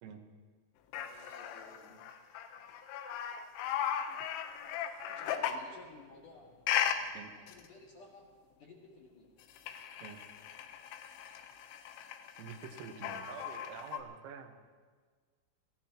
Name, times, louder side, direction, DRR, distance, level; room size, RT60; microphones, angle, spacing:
sound 1, 0.9-5.7 6.7-7.0 7.5-7.7 9.4-14.0, left 9 dB, 80° left, 3.5 m, -37 dB
voice 1, 1.1-2.0 5.0-6.5 7.4-8.3 8.6-9.3, left 3 dB, 55° left, -2 dB, 2.8 m, -55 dB
voice 2, 12.4-14.6, right 6 dB, 85° right, 4 dB, 4.0 m, -47 dB
26.5 x 17.0 x 3.0 m, 1.5 s
omnidirectional pair, 5.8 m